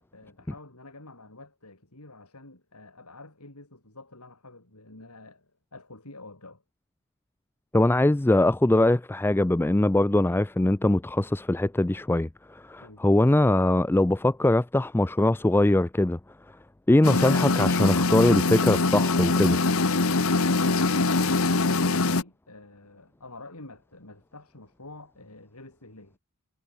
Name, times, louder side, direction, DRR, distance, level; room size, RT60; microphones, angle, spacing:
voice 1, 0.0-6.6 12.8-13.0 20.5-26.2, left 2 dB, 90° left, 6.1 m, -47 dB
voice 2, 7.7-16.2 16.9-19.6, left 1 dB, 10° left, 0.4 m, -22 dB
sound 1, 17.0-22.2, left 3 dB, 70° left, 1.4 m, -23 dB
head